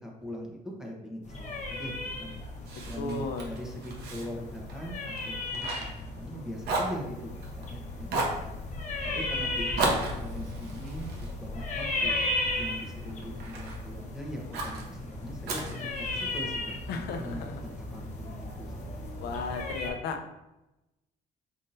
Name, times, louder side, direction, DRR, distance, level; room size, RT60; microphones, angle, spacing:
voice 1, 0.0-2.3 2.8-8.6 9.1-12.1 12.6-18.9, equal, 5° right, -1 dB, 1.0 m, -41 dB
sound 1, 1.2-19.9, left 2 dB, 45° left, 1.1 m, -36 dB
Fire, 2.6-6.4 6.6-7.7 8.1-8.5 9.8-12.2 12.7-13.8 14.5-14.8 15.5-16.5, right 2 dB, 75° right, 1.0 m, -34 dB
voice 2, 2.9-3.5 16.9-17.6 19.2-20.2, left 4 dB, 75° left, 5 dB, 0.6 m, -34 dB
5.6 x 3.6 x 2.6 m, 0.96 s
cardioid pair, 110°, 17 cm